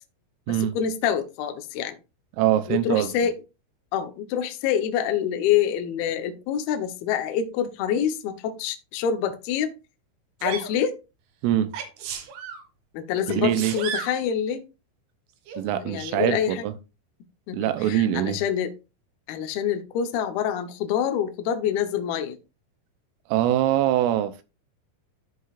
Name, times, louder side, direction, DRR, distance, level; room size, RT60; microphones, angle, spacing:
voice 1, 0.5-2.0 2.7-3.4 3.9-9.7 10.4-10.9 12.9-14.7 15.8-16.7 17.5-18.7 19.3-22.4, left 8 dB, 75° left, 2.3 m, -26 dB
voice 2, 2.4-3.1 11.4-11.7 13.3-13.7 15.6-16.7 17.5-18.4 23.3-24.4, right 12 dB, 85° right, 3.2 m, -23 dB
Sneeze, 10.4-10.7 11.7-12.6 13.3-14.2 15.5-15.6, right 7 dB, 70° right, 2.7 m, -33 dB
13.5 x 5.6 x 2.4 m
omnidirectional pair, 5.8 m